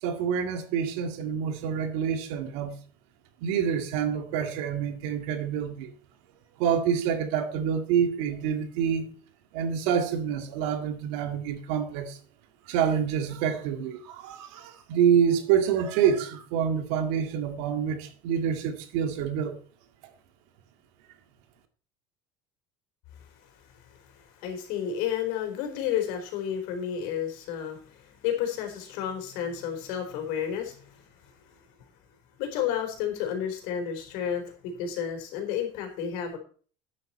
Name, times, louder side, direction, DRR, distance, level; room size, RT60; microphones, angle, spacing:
voice 1, 0.0-2.8 3.4-5.9 6.6-9.1 9.5-12.2 12.7-19.6, right 8 dB, 70° right, 2.1 m, -27 dB
voice 2, 24.4-27.8 28.2-30.8 32.4-34.4 34.8-36.4, left 9 dB, 65° left, 4.0 m, -31 dB
13.0 x 9.8 x 4.3 m
cardioid pair, 160°, 16 cm